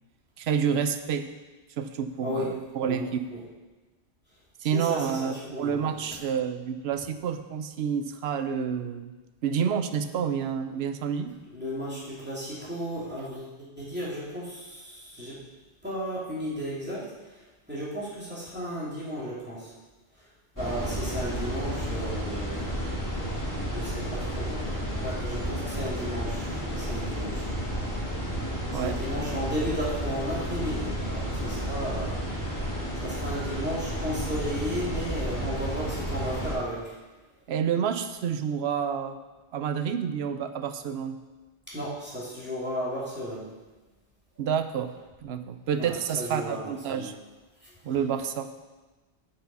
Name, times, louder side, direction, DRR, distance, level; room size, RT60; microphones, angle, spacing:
voice 1, 0.4-1.3 1.8-3.2 4.6-9.1 9.4-11.4 28.7-29.0 37.5-39.2 39.5-41.2 44.4-44.9 45.2-47.1 47.8-48.5, right 7 dB, 70° right, 9 dB, 0.9 m, -29 dB
voice 2, 2.2-2.5 2.8-3.0 3.3-3.4 4.6-5.9 11.5-15.4 15.8-17.4 17.7-19.7 20.6-22.7 23.7-24.7 25.0-27.5 28.7-32.2 32.9-37.0 41.7-43.5 45.8-47.1 47.6-47.7, equal, 10° right, -8 dB, 2.9 m, -34 dB
sound 1, 20.6-36.5, equal, 15° left, 2.2 m, -32 dB
8.1 x 6.6 x 5.5 m, 1.2 s
omnidirectional pair, 1.1 m